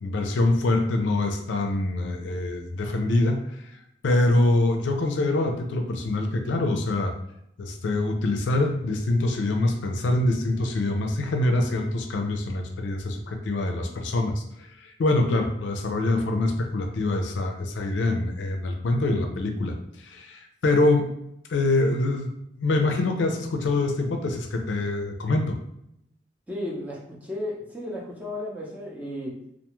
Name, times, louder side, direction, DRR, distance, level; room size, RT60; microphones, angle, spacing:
voice 1, 0.0-3.7 4.0-7.1 7.6-21.1 21.5-22.3 22.6-25.6, left 2 dB, 85° left, 4 dB, 0.4 m, -25 dB
voice 2, 26.5-29.3, left 1 dB, 10° right, -5 dB, 0.6 m, -34 dB
2.4 x 2.3 x 2.9 m, 0.77 s
head